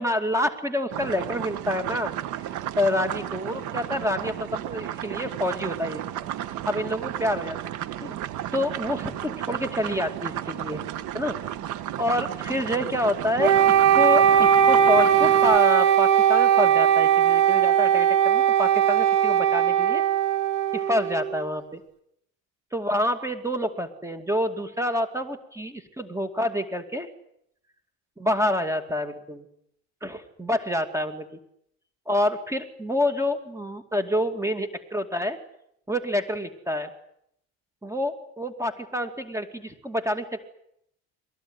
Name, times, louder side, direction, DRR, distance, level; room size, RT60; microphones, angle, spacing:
voice 1, 0.0-2.1 2.8-6.0 6.7-7.6 8.0-8.1 8.5-10.8 11.1-11.3 12.0-20.0 20.7-21.8 22.7-27.1 28.2-29.4 30.0-31.3 32.1-35.4 35.9-36.9 37.8-40.5, left 1 dB, 10° right, 9 dB, 2.5 m, -27 dB
sound 1, 0.9-15.6, right 12 dB, 75° right, 1.7 m, -33 dB
Wind instrument woodwind instrument, 13.4-21.4, right 9 dB, 90° right, 2.2 m, -19 dB
23.0 x 18.5 x 9.6 m, 0.73 s
supercardioid pair, 95°, 30 cm